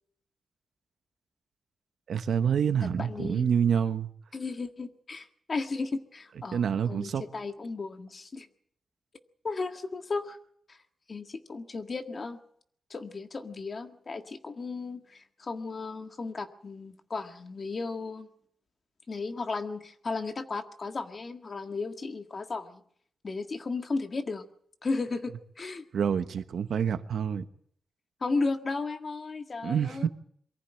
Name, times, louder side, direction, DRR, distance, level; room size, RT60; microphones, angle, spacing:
voice 1, 2.1-4.1 6.5-7.2 25.9-27.4 29.6-30.1, right 7 dB, 85° right, 1.1 m, -27 dB
voice 2, 2.8-3.5 4.3-8.5 9.4-10.4 10.7-10.8 11.1-12.4 12.9-18.3 19.1-22.8 23.2-24.5 24.8-25.8 28.2-30.1, left 3 dB, 40° left, 1.8 m, -35 dB
23.5 x 15.0 x 8.9 m
wide cardioid pair, 125°, 0 cm